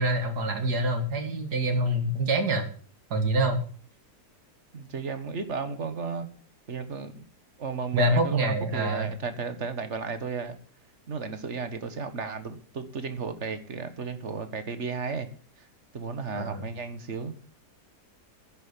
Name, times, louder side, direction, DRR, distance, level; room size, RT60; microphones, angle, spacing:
voice 1, 0.0-2.7 3.1-3.6 7.9-9.1 16.4-16.6, right 1 dB, 70° right, 7 dB, 2.7 m, -26 dB
voice 2, 4.7-6.3 6.7-7.2 7.6-10.6 11.1-15.3 15.6-15.7 15.9-17.3, right 5 dB, 45° right, 10 dB, 1.7 m, -34 dB
11.0 x 10.5 x 7.3 m, 0.43 s
omnidirectional pair, 1.8 m